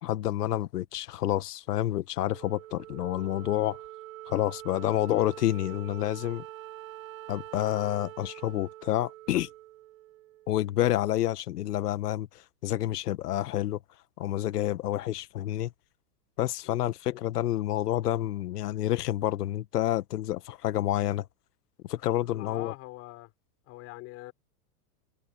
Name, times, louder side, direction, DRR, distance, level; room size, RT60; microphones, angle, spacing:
voice 1, 0.0-3.8 4.3-6.4 7.3-9.5 10.5-13.8 14.2-15.7 16.4-21.3 21.8-22.7, left 13 dB, 85° left, 1.7 m, -29 dB
Wind instrument woodwind instrument, 2.2-10.8, right 15 dB, 60° right, 3.1 m, -45 dB
voice 2, 22.3-23.3 23.7-24.3, left 21 dB, 30° left, 5.7 m, -43 dB
supercardioid pair, 170°, 45 cm